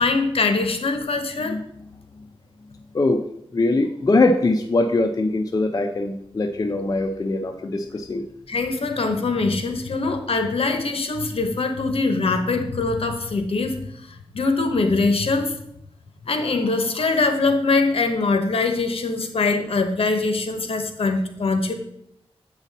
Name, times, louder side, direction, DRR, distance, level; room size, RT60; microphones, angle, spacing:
voice 1, 0.0-1.6 8.5-13.8 14.3-15.5 16.2-21.7, left 3 dB, 65° left, 6 dB, 1.0 m, -22 dB
voice 2, 3.5-8.2, left 2 dB, 35° left, 4 dB, 0.5 m, -22 dB
8.2 x 5.6 x 4.1 m, 0.77 s
wide cardioid pair, 110°, 11 cm